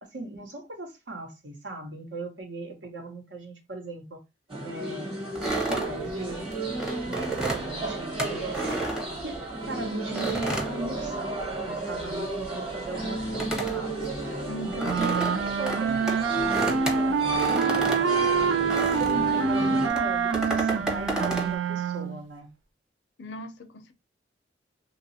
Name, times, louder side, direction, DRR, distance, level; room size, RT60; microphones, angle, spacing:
voice 1, 0.0-4.2 4.6-5.2 5.7-6.5 7.1-8.9 9.2-9.4 9.7-11.4 11.6-14.1 14.6-17.2 17.5-22.5, right 2 dB, 75° right, 1.0 m, -38 dB
sound 1, 4.5-19.9, right 2 dB, 30° right, 1.2 m, -33 dB
sound 2, 5.4-9.7 10.2-11.6 11.9-19.3 19.9-21.5, right 2 dB, 5° right, 0.7 m, -32 dB
voice 2, 14.5-14.9 23.2-23.9, right 1 dB, 70° left, 0.6 m, -39 dB
sound 3, 14.8-22.2, right 6 dB, 90° right, 0.4 m, -26 dB
3.0 x 2.4 x 2.6 m
head